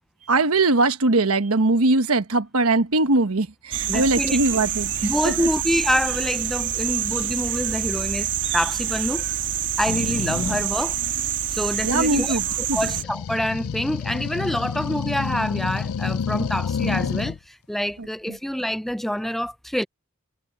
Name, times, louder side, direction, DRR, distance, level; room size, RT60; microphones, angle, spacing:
voice 1, 0.2-5.5 11.8-12.8 18.0-18.4, right 2 dB, 85° right, 1.2 m, -21 dB
sound 1, 3.7-13.0, right 10 dB, 60° right, 2.9 m, -27 dB
voice 2, 3.9-4.4 5.0-9.2 9.8-11.0 11.5-12.4 12.7-19.8, equal, ahead, 0.3 m, -26 dB
sound 2, 9.8-10.7 12.8-17.4, left 6 dB, 75° left, 0.4 m, -28 dB
head